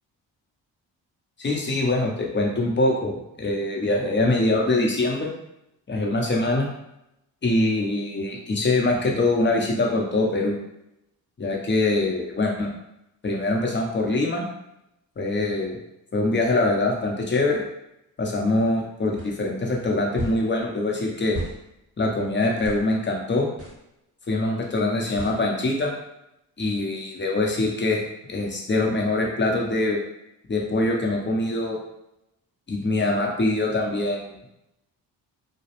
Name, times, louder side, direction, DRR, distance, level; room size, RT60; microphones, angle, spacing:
voice 1, 1.4-5.3 5.9-6.7 7.4-10.5 11.4-12.7 13.2-14.5 15.2-15.8 16.1-17.6 18.2-21.4 22.0-23.5 24.3-25.9 26.6-30.0 30.5-31.8 32.7-34.3, left 2 dB, 25° left, 0 dB, 0.7 m, -23 dB
sound 1, 19.2-19.3 20.2-20.4 21.3-21.6 22.6-22.8 23.6-23.8 25.2-25.4, right 2 dB, 30° right, 0.8 m, -33 dB
2.3 x 2.0 x 2.9 m, 0.86 s
hypercardioid pair, 45°, 47 cm